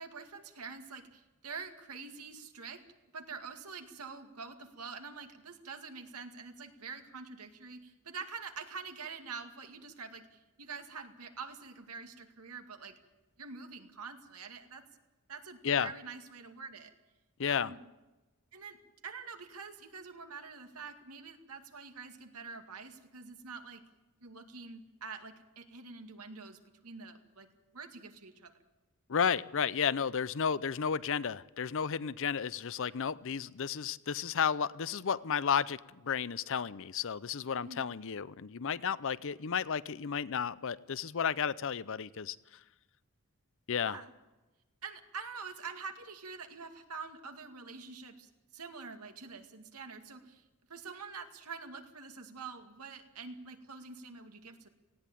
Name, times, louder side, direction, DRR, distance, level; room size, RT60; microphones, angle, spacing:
voice 1, 0.0-2.8 3.1-12.9 13.4-14.8 15.3-16.9 17.5-17.8 18.5-18.8 19.0-23.8 24.2-27.5 27.7-28.5 37.6-37.8 43.8-44.1 44.8-50.4 50.7-54.7, right 5 dB, 85° right, 6 dB, 2.2 m, -46 dB
voice 2, 17.4-17.7 29.1-42.4 43.7-44.0, left 7 dB, 60° left, 18 dB, 0.6 m, -32 dB
18.5 x 17.0 x 9.1 m, 1.1 s
head